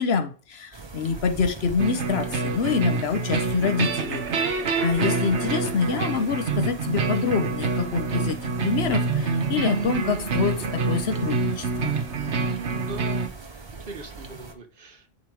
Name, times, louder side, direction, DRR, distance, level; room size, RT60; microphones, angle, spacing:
voice 1, 0.0-4.2 4.8-11.9, left 5 dB, 70° left, 8 dB, 1.1 m, -26 dB
sound 1, 0.7-14.5, right 4 dB, 30° right, 0.7 m, -42 dB
sound 2, 1.8-13.3, right 4 dB, 85° right, 1.3 m, -27 dB
voice 2, 12.2-13.3 13.8-15.1, right 3 dB, 55° right, 7 dB, 1.2 m, -40 dB
9.3 x 3.4 x 4.7 m, 0.38 s
omnidirectional pair, 1.1 m